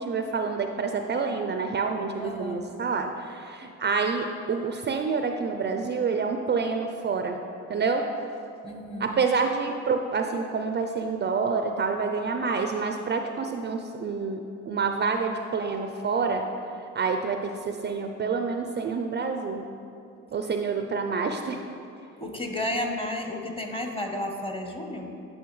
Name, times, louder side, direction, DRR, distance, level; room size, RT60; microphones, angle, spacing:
voice 1, 0.0-7.4 7.7-8.1 9.0-16.5 16.9-19.6 20.3-21.6, right 5 dB, 35° right, 5 dB, 0.4 m, -28 dB
voice 2, 2.2-2.7 8.6-9.1 22.2-25.1, left 1 dB, 20° left, 3 dB, 0.9 m, -32 dB
9.2 x 5.4 x 3.1 m, 2.6 s
cardioid pair, 90°, 30 cm